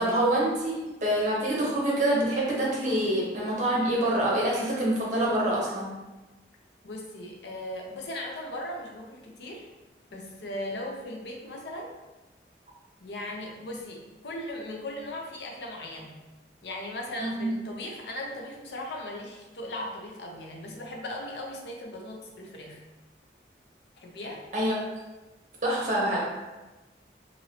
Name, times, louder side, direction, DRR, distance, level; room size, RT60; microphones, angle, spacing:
voice 1, 0.0-5.9 17.2-17.5 24.5-24.9 25.6-26.2, right 1 dB, 45° right, -4 dB, 0.8 m, -26 dB
voice 2, 6.8-9.7 10.1-11.9 13.0-16.2 16.6-22.8 24.0-24.4, left 1 dB, 75° left, 0 dB, 0.6 m, -38 dB
2.9 x 2.6 x 2.8 m, 1.1 s
head